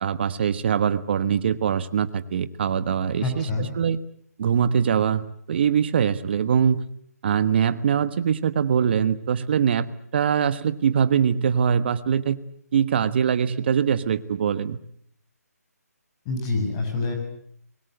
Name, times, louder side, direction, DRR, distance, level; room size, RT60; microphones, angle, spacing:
voice 1, 0.0-4.0 4.4-6.8 7.2-9.9 10.1-12.4 12.7-14.8, right 7 dB, 40° right, 13 dB, 1.3 m, -22 dB
voice 2, 3.2-3.7 16.3-17.2, left 3 dB, 20° left, 3 dB, 7.2 m, -26 dB
26.5 x 22.5 x 8.0 m, 0.66 s
hypercardioid pair, 160°, 9 cm